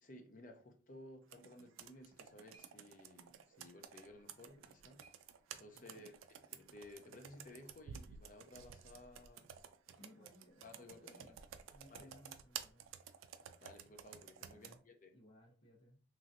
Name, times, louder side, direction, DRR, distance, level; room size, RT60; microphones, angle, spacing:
voice 1, 0.0-5.0 5.5-9.5 9.9-10.2 10.6-11.3 11.9-12.1 13.6-15.2, left 1 dB, 40° left, 0.5 m, -57 dB
Computer keyboard, 1.3-14.8, right 9 dB, 85° right, 0.3 m, -53 dB
sound 1, 1.8-6.0, right 3 dB, 30° right, 0.5 m, -73 dB
voice 2, 5.7-6.1 9.9-11.4 11.7-12.9 14.4-14.8 15.1-16.0, equal, 75° left, 1.2 m, -62 dB
3.0 x 2.6 x 2.5 m
head